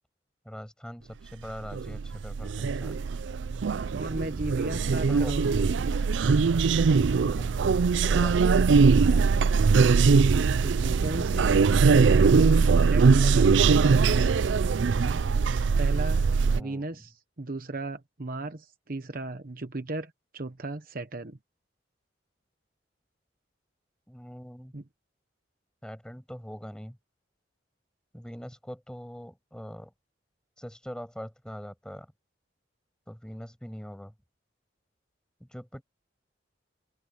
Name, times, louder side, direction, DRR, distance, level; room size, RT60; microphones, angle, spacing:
voice 1, 0.4-3.0 5.1-5.3 5.6-5.7 7.2-7.5 8.0-8.7 16.4-16.9 24.1-24.7 25.8-27.0 28.1-29.9 30.6-32.1 33.1-34.1 35.4-35.8, equal, 5° left, 6.3 m, -42 dB
sound 1, 1.6-16.6, right 5 dB, 75° right, 0.4 m, -22 dB
voice 2, 3.9-5.6 10.6-14.3 15.8-16.3 16.5-21.4 24.7-24.8, right 2 dB, 50° right, 1.1 m, -36 dB
open air
head